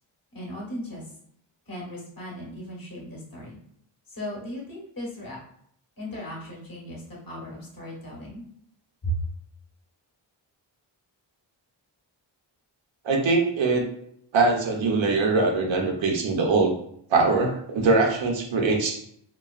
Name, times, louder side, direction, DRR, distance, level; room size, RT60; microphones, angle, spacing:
voice 1, 0.3-1.0 1.7-3.6 4.1-5.4 6.0-8.4 9.0-9.3, right 1 dB, 50° left, -3 dB, 1.4 m, -36 dB
voice 2, 13.0-13.9 14.3-16.7 17.1-19.0, right 3 dB, 75° right, 2 dB, 0.7 m, -22 dB
3.0 x 2.3 x 2.4 m, 0.68 s
cardioid pair, 75°, 46 cm